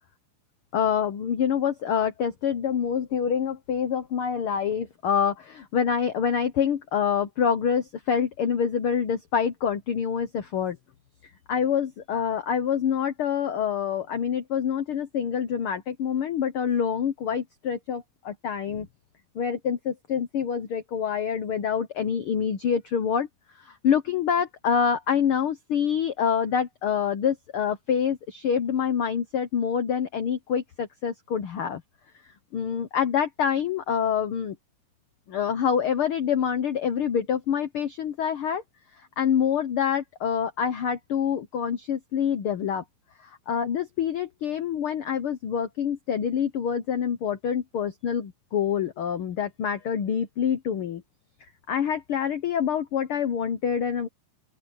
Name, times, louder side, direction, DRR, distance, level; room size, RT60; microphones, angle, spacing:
voice 1, 0.7-10.8 11.5-18.9 19.3-23.3 23.6-31.8 32.5-34.5 35.3-38.6 39.2-42.8 43.2-51.0 51.7-54.1, left 7 dB, 70° left, 1.3 m, -26 dB
open air
omnidirectional pair, 3.8 m